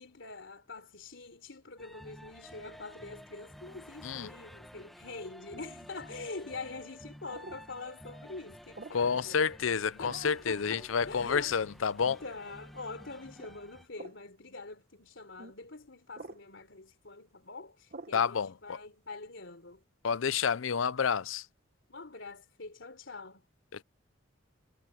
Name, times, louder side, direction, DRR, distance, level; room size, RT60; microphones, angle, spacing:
voice 1, 0.0-9.4 10.0-11.6 12.2-19.8 21.9-23.5, left 3 dB, 70° left, 3.7 m, -45 dB
sound 1, 1.8-13.9, equal, ahead, 1.5 m, -52 dB
sound 2, 5.5-5.9 7.3-7.6 8.8-9.1 10.1-10.4 11.2-11.4 12.1-12.3 13.4-13.6 13.9-14.2 15.4-15.6 16.1-16.4 17.9-18.2, right 2 dB, 50° right, 1.3 m, -47 dB
voice 2, 8.9-12.2 18.1-18.8 20.0-21.5 23.7-23.8, left 6 dB, 85° left, 0.6 m, -29 dB
head